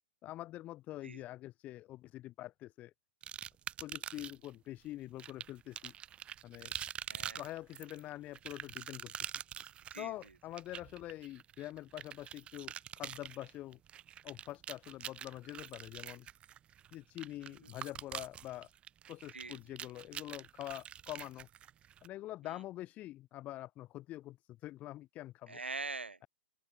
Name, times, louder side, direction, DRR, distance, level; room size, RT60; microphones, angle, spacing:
voice 1, 0.2-2.9 3.8-5.9 6.4-6.7 7.4-9.3 10.0-13.8 14.2-16.3 16.9-18.7 19.1-21.5 22.0-25.6, left 15 dB, 25° left, 1.9 m, -45 dB
sound 1, 3.2-4.5 5.2-22.1, right 10 dB, 20° right, 1.1 m, -46 dB
voice 2, 7.0-7.4 9.9-10.1 17.4-17.5 19.3-19.6 22.5-22.6 25.5-26.3, right 3 dB, 75° right, 1.5 m, -43 dB
open air
figure-of-eight pair, 115°, 6 cm